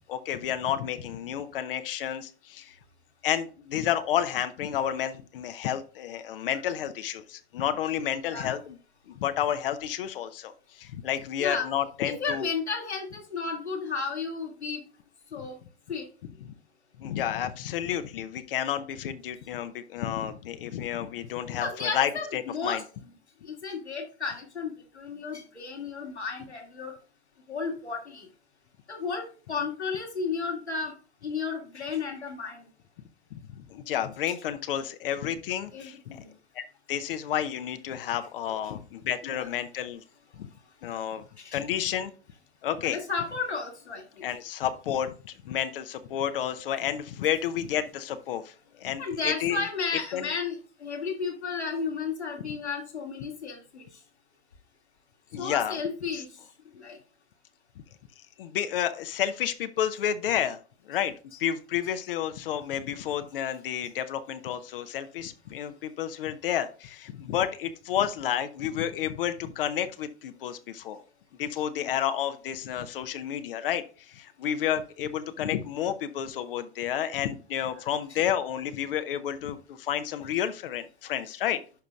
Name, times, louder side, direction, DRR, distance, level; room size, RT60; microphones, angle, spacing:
voice 1, 0.1-2.8 3.2-8.8 9.1-12.4 17.0-22.8 33.3-36.2 36.5-40.0 40.3-40.5 40.8-41.2 41.5-42.1 42.6-43.0 44.2-49.6 50.1-50.3 55.3-55.8 56.1-56.2 58.4-60.6 60.9-61.1 61.4-71.0 71.4-81.6, left 10 dB, 55° left, 10 dB, 0.8 m, -31 dB
voice 2, 12.0-14.8 15.3-15.6 15.9-16.0 21.6-22.8 23.4-26.9 27.5-28.3 28.9-30.9 31.2-32.7 35.7-36.3 39.2-39.5 40.9-41.0 41.4-41.6 42.8-44.2 49.0-50.6 50.8-53.9 55.4-56.3 56.8-57.0 71.8-71.9, left 5 dB, 85° left, 1 dB, 2.3 m, -33 dB
11.5 x 5.1 x 2.4 m, 0.38 s
figure-of-eight pair, 100°, 33 cm